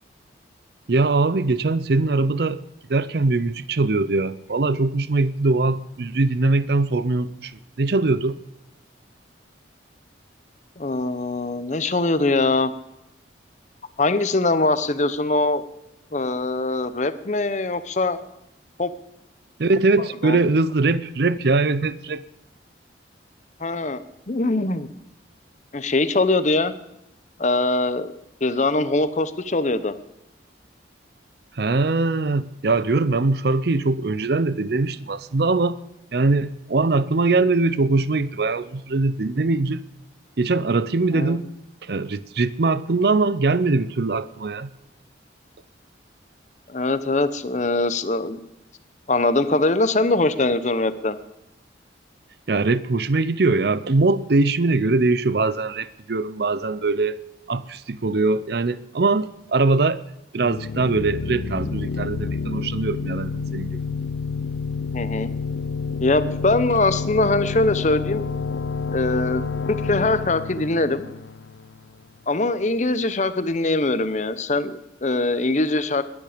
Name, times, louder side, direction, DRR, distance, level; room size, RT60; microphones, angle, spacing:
voice 1, 0.9-2.6 2.9-8.4 19.6-22.2 31.6-35.8 36.1-39.8 40.4-41.5 41.8-44.7 52.5-57.2 57.5-60.0 60.3-63.8, right 3 dB, 55° right, 0.6 m, -22 dB
voice 2, 10.8-12.7 14.0-15.6 16.1-18.2 18.8-18.9 20.2-20.4 23.6-24.9 25.7-26.7 27.4-28.1 28.4-29.9 41.1-41.4 46.7-48.4 49.1-51.2 64.9-65.3 66.0-68.3 68.9-69.4 69.7-71.1 72.3-76.0, left 2 dB, 40° left, 0.8 m, -22 dB
sound 1, 60.4-72.0, left 5 dB, 70° left, 0.5 m, -29 dB
20.5 x 9.7 x 5.0 m
head